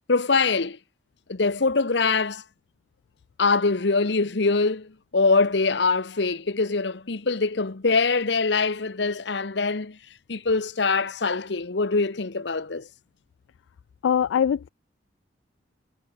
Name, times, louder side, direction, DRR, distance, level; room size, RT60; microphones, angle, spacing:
voice 1, 0.1-0.8 1.3-2.4 3.4-10.0 10.3-12.9, left 4 dB, 65° left, 1.0 m, -23 dB
voice 2, 14.0-14.7, left 8 dB, 90° left, 0.3 m, -22 dB
head